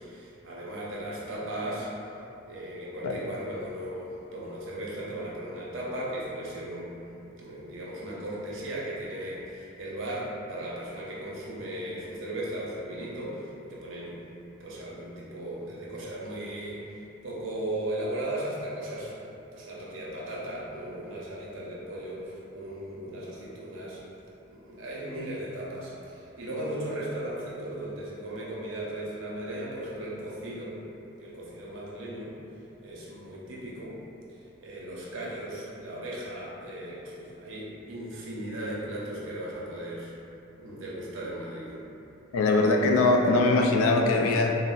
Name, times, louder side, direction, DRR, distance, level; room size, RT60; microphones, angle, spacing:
voice 1, 0.0-1.9 2.5-14.2 14.6-19.1 19.5-24.0 24.5-30.8 31.2-32.4 32.8-34.0 34.6-40.1 40.6-41.7, right 1 dB, 70° right, -6 dB, 0.6 m, -37 dB
voice 2, 42.3-44.5, left 2 dB, 90° left, 2 dB, 0.3 m, -22 dB
3.9 x 2.0 x 2.3 m, 2.9 s
head